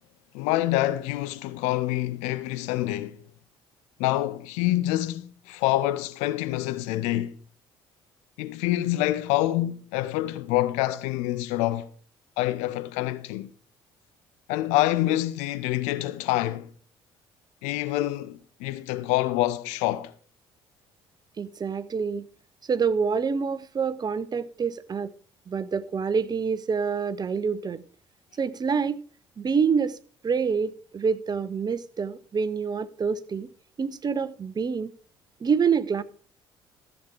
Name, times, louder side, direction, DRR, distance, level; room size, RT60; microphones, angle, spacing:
voice 1, 0.3-3.2 4.0-7.4 8.4-11.9 12.4-13.5 14.5-16.7 17.6-20.1, left 15 dB, 65° left, 0.7 m, -26 dB
voice 2, 21.4-22.3 22.7-25.1 25.5-27.8 28.4-29.0 29.4-30.0 30.2-33.5 33.8-34.9 35.4-36.0, right 6 dB, 30° right, 0.8 m, -26 dB
14.5 x 7.3 x 4.9 m
figure-of-eight pair, 50°, 13 cm